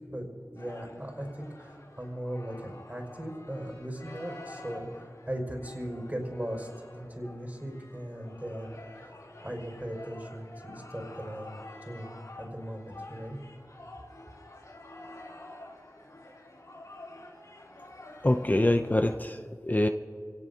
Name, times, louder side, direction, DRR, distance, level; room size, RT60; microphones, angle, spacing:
voice 1, 0.5-6.7 6.9-8.8 9.4-13.4, equal, 30° right, 0 dB, 5.5 m, -38 dB
sound 1, 0.6-19.1, left 1 dB, 90° left, 3.3 m, -49 dB
voice 2, 18.2-19.9, left 1 dB, 30° left, 6 dB, 0.6 m, -25 dB
29.5 x 17.5 x 2.8 m, 2.3 s
wide cardioid pair, 45°, 6 cm